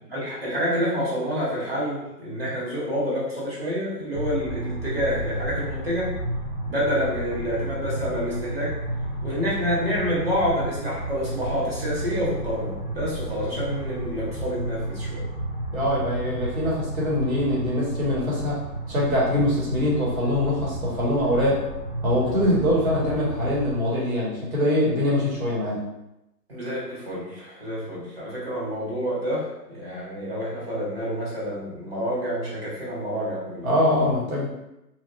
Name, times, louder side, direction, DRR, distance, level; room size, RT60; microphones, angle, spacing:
voice 1, 0.1-6.1 6.7-8.7 9.2-15.3 26.5-33.7, equal, 40° right, -7 dB, 1.1 m, -28 dB
sound 1, 4.1-23.8, right 1 dB, 10° right, 0.9 m, -32 dB
voice 2, 15.7-18.6 18.9-21.6 22.0-25.8 33.6-34.5, left 1 dB, 60° right, -6 dB, 1.4 m, -23 dB
3.1 x 2.4 x 2.6 m, 0.90 s
hypercardioid pair, 175°, 48 cm